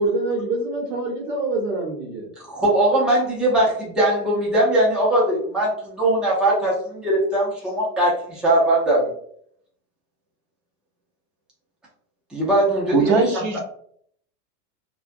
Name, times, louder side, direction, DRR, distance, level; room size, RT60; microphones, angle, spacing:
voice 1, 0.0-2.3, right 2 dB, 90° right, -2 dB, 1.0 m, -25 dB
voice 2, 2.5-9.1 12.3-12.9, right 1 dB, ahead, -6 dB, 0.4 m, -20 dB
voice 3, 12.9-13.6, right 4 dB, 50° right, 4 dB, 0.7 m, -21 dB
2.4 x 2.2 x 2.5 m, 0.66 s
supercardioid pair, 125°, 47 cm